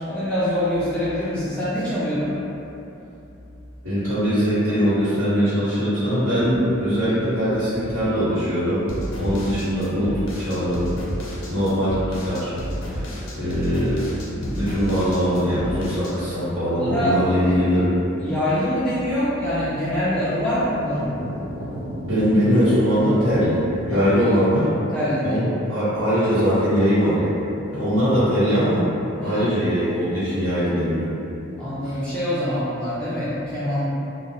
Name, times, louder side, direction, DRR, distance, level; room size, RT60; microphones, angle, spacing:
voice 1, 0.0-2.4 16.6-17.2 18.2-21.1 23.9-24.0 24.9-25.4 29.2-29.5 31.6-33.9, equal, 5° left, -11 dB, 0.4 m, -24 dB
voice 2, 3.8-8.8 9.2-10.9 11.5-12.6 12.9-13.1 13.4-14.0 14.4-17.9 22.0-24.7 25.2-27.3 27.7-28.9 29.2-31.1 31.8-32.0, equal, 70° right, -14 dB, 1.3 m, -21 dB
sound 1, 6.3-8.3 8.7-8.8 9.2-24.0, equal, 85° right, 0.7 m, -40 dB
sound 2, 8.9-16.1, equal, 75° left, 0.5 m, -31 dB
2.3 x 2.1 x 2.8 m, 2.8 s
head